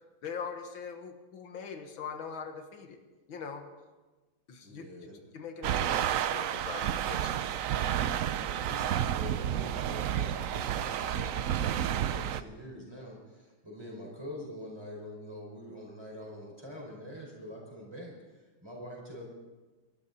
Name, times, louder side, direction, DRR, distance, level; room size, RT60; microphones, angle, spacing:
voice 1, 0.2-3.0 3.3-3.7 4.5-7.4, left 6 dB, 90° left, 5 dB, 2.2 m, -42 dB
voice 2, 4.6-5.4 8.0-19.3, equal, 15° right, -2 dB, 5.1 m, -45 dB
sound 1, 5.6-12.4, right 10 dB, 90° right, 0.7 m, -30 dB
24.5 x 13.0 x 4.2 m, 1.2 s
omnidirectional pair, 2.1 m